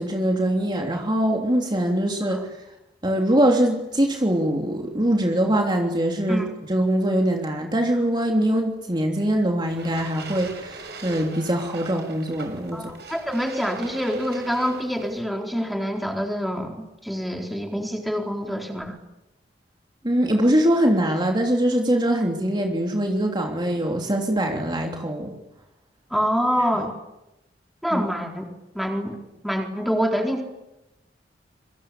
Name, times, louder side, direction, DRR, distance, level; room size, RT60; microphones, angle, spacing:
voice 1, 0.0-2.4 3.0-12.9 20.0-25.3 27.9-28.0, right 1 dB, 25° right, 1 dB, 3.2 m, -23 dB
sound 1, 9.7-15.2, right 4 dB, 65° right, 6.7 m, -41 dB
voice 2, 12.7-19.0 26.1-26.9 27.8-28.4 28.7-29.2 29.4-30.4, equal, ahead, 2 dB, 4.1 m, -26 dB
27.0 x 25.0 x 8.5 m, 0.92 s
head